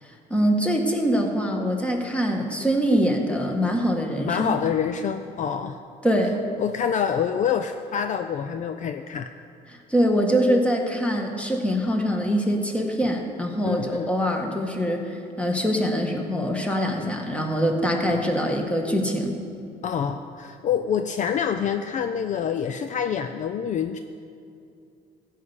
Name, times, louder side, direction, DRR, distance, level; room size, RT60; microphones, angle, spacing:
voice 1, 0.3-4.5 6.0-6.4 9.9-19.4, equal, 5° left, 2 dB, 1.6 m, -24 dB
voice 2, 4.3-5.8 6.6-9.3 13.7-14.1 18.1-18.3 19.8-24.0, left 8 dB, 45° left, 8 dB, 0.5 m, -26 dB
15.0 x 5.6 x 8.2 m, 2.5 s
cardioid pair, 110°, 17 cm